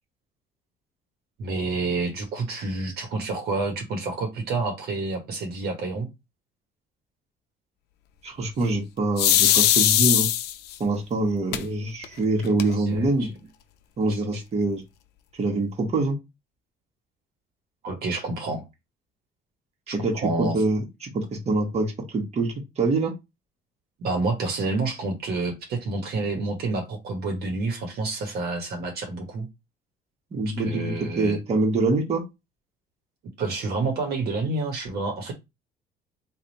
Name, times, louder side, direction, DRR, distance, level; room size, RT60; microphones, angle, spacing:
voice 1, 1.4-6.1 12.8-13.3 14.1-14.4 17.8-18.6 20.1-20.6 24.0-29.5 30.6-31.4 33.4-35.3, right 3 dB, 70° right, 1.3 m, -29 dB
voice 2, 8.2-10.3 10.8-13.3 14.0-14.8 15.4-16.1 19.9-23.1 30.3-32.2, right 2 dB, 40° right, 1.3 m, -25 dB
sound 1, 9.2-10.7 11.5-11.6 12.0-12.1 12.4-13.0, left 12 dB, 75° left, 0.5 m, -19 dB
3.2 x 2.6 x 4.0 m
cardioid pair, 110°, 17 cm